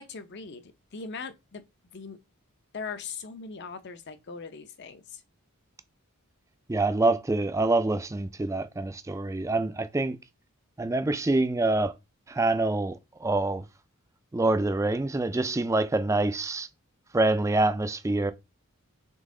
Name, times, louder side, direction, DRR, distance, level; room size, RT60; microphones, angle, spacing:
voice 1, 0.0-1.6 1.9-2.2 2.7-5.2, left 5 dB, 50° left, 0.6 m, -40 dB
voice 2, 6.7-10.2 10.8-11.9 12.3-13.6 14.3-16.7 17.1-18.3, right 2 dB, 15° right, 0.3 m, -26 dB
3.8 x 3.5 x 3.7 m
head